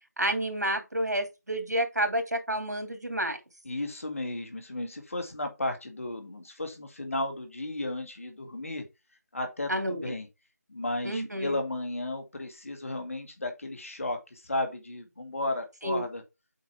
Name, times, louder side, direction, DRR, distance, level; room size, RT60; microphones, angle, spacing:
voice 1, 0.2-3.4 9.7-10.1 11.0-11.6 15.8-16.0, right 1 dB, 75° right, 2.5 m, -29 dB
voice 2, 3.7-8.8 9.3-10.3 10.7-16.2, left 2 dB, 55° left, 1.8 m, -34 dB
7.5 x 4.8 x 3.5 m
figure-of-eight pair, 165°, 9 cm